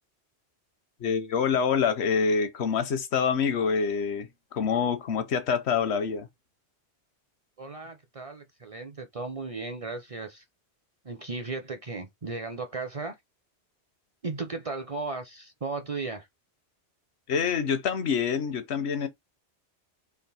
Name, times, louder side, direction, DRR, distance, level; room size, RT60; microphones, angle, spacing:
voice 1, 1.0-6.3 17.3-19.1, left 6 dB, 70° left, 1.0 m, -26 dB
voice 2, 7.6-10.4 11.0-13.1 14.2-16.3, right 3 dB, 40° right, 0.5 m, -35 dB
3.5 x 2.5 x 4.0 m
omnidirectional pair, 1.2 m